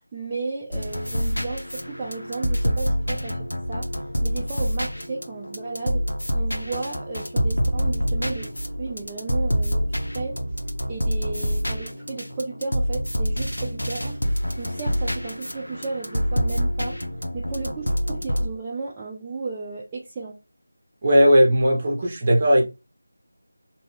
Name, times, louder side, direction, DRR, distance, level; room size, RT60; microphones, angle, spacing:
voice 1, 0.1-3.9 4.2-6.1 6.3-8.5 8.8-10.4 10.9-14.2 14.6-17.0 17.3-20.4, right 4 dB, 15° right, 0.4 m, -34 dB
sound 1, 0.7-18.5, equal, 80° left, 0.6 m, -26 dB
voice 2, 21.0-22.6, equal, 30° right, 0.8 m, -17 dB
2.6 x 2.3 x 3.2 m
figure-of-eight pair, 165°, 0 cm